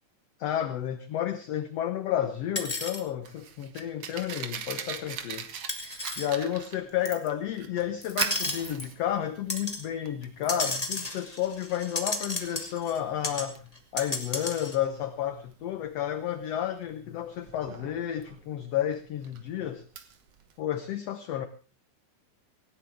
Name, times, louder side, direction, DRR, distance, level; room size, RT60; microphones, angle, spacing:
voice 1, 0.4-5.5 6.2-13.6 13.9-19.8 20.6-21.5, left 10 dB, 65° left, 9 dB, 1.8 m, -31 dB
sound 1, 2.6-3.0 4.1-4.2 5.7-6.3 7.1-7.3 8.0-8.9 9.5-9.8 10.4-13.0 13.2-13.5 13.8-14.8, left 2 dB, 15° left, 1.8 m, -33 dB
Fire, 2.9-20.6, right 8 dB, 55° right, 2.0 m, -41 dB
18.5 x 17.5 x 3.5 m, 0.35 s
omnidirectional pair, 3.7 m